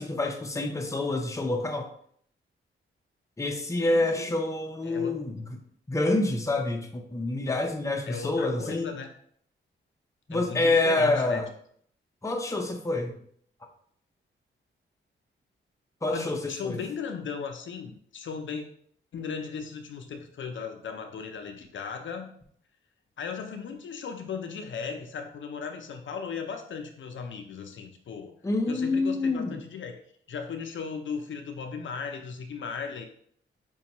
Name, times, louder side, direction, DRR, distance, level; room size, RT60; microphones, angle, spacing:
voice 1, 0.0-1.9 3.4-5.5 5.9-8.9 10.3-11.5 12.2-13.1 16.0-16.8 28.4-29.6, left 2 dB, 15° left, 3 dB, 0.6 m, -27 dB
voice 2, 3.7-4.3 4.8-5.2 8.1-9.1 10.3-11.4 16.1-18.6 19.1-22.3 23.2-28.3 28.7-29.9 30.3-33.1, left 6 dB, 65° left, 5 dB, 0.5 m, -37 dB
5.1 x 2.3 x 2.9 m, 0.63 s
cardioid pair, 80°, 21 cm